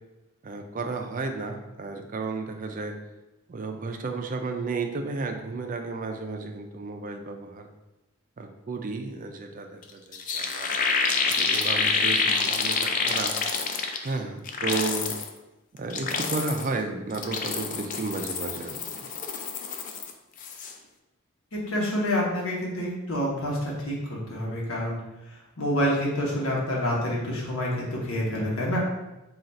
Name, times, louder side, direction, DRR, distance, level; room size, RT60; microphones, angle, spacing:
voice 1, 0.4-3.0 3.5-7.7 8.4-10.7 11.3-13.3 14.0-15.1 15.7-19.1, right 3 dB, 40° right, 4 dB, 0.4 m, -33 dB
sound 1, 9.8-9.9 10.1-14.1 14.5-15.3 15.8-16.7 17.1-20.1 20.4-20.7, left 5 dB, 40° left, 0.3 m, -27 dB
voice 2, 21.5-25.0 25.6-28.8, equal, 85° left, -3 dB, 1.0 m, -27 dB
3.8 x 2.4 x 4.2 m, 0.99 s
head